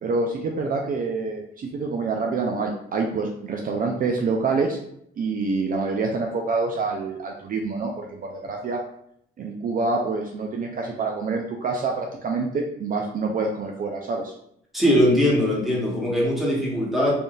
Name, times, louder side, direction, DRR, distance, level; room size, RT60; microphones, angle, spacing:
voice 1, 0.0-4.8 5.2-8.8 9.4-14.3, right 4 dB, 45° right, 1 dB, 0.4 m, -26 dB
voice 2, 14.7-17.1, equal, ahead, -5 dB, 1.2 m, -21 dB
3.4 x 2.6 x 2.3 m, 0.71 s
cardioid pair, 90°, 20 cm